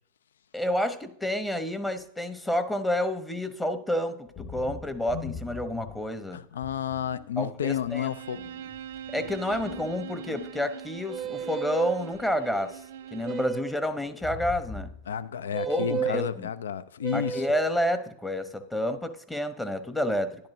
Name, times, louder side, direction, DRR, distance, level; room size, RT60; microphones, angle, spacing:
voice 1, 0.5-6.4 7.4-8.1 9.1-12.8 13.1-14.9 15.7-16.5 17.1-20.4, left 1 dB, 10° left, 0.9 m, -29 dB
sound 1, 4.3-6.1 6.6-7.3 7.7-10.8 11.2-12.8 13.0-13.3 13.9-15.1 15.4-15.7, left 5 dB, 45° left, 1.7 m, -43 dB
voice 2, 6.3-8.4 15.1-17.4, left 8 dB, 80° left, 0.4 m, -31 dB
Bowed string instrument, 7.9-13.7, right 9 dB, 70° right, 0.4 m, -42 dB
sound 2, 11.1-12.0 13.2-13.8 15.5-16.2 17.0-17.7, right 6 dB, 20° right, 0.6 m, -32 dB
11.5 x 10.5 x 2.7 m
hypercardioid pair, 95°, 0 cm